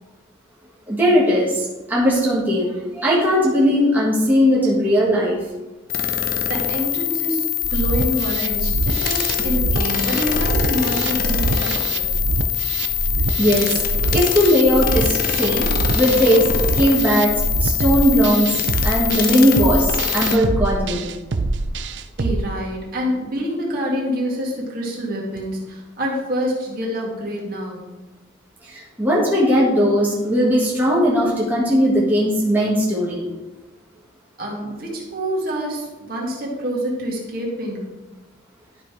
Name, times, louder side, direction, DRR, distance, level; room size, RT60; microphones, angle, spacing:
voice 1, 0.9-5.4 9.3-9.4 13.4-13.8 14.1-15.7 15.9-16.5 16.7-17.3 17.6-21.1 28.6-33.3, equal, 10° right, -7 dB, 1.7 m, -18 dB
sound 1, 5.9-20.4, left 9 dB, 45° left, 0.7 m, -23 dB
voice 2, 6.5-12.1 22.2-27.8 34.4-37.8, equal, 45° right, -3 dB, 1.9 m, -26 dB
sound 2, 7.6-22.4, right 3 dB, 65° right, 0.5 m, -25 dB
12.0 x 4.0 x 4.8 m, 1.1 s
head